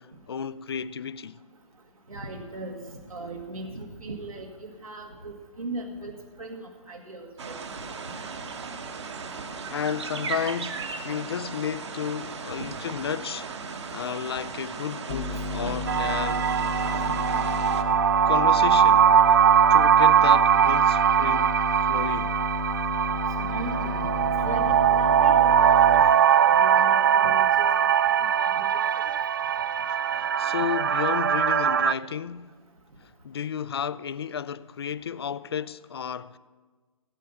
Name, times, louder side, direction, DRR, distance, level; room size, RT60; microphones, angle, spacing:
voice 1, 0.3-1.4 9.7-13.5 13.9-16.5 18.3-19.1 19.7-21.5 21.8-22.5 29.9-32.6 33.0-36.4, left 8 dB, 45° left, 0.5 m, -32 dB
voice 2, 2.1-8.3 12.6-12.7 15.6-15.7 23.4-24.1 24.4-26.0 26.3-27.7 28.2-28.7 29.0-29.1, right 2 dB, 75° right, 1.7 m, -38 dB
sound 1, 7.4-17.8, right 5 dB, 50° right, 1.3 m, -37 dB
sound 2, 15.1-26.0, left 3 dB, 25° left, 0.9 m, -32 dB
sound 3, 15.9-31.9, right 8 dB, 35° right, 0.3 m, -21 dB
17.0 x 8.7 x 5.6 m
figure-of-eight pair, 135°, 18 cm